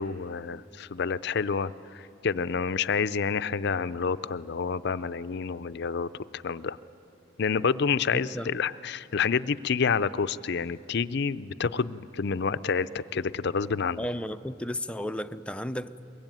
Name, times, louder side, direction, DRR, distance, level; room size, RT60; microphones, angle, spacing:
voice 1, 0.0-6.8 7.4-14.1, left 5 dB, 60° left, 15 dB, 0.5 m, -28 dB
voice 2, 14.0-16.1, equal, 5° left, 9 dB, 0.5 m, -33 dB
23.5 x 22.0 x 9.2 m, 2.7 s
head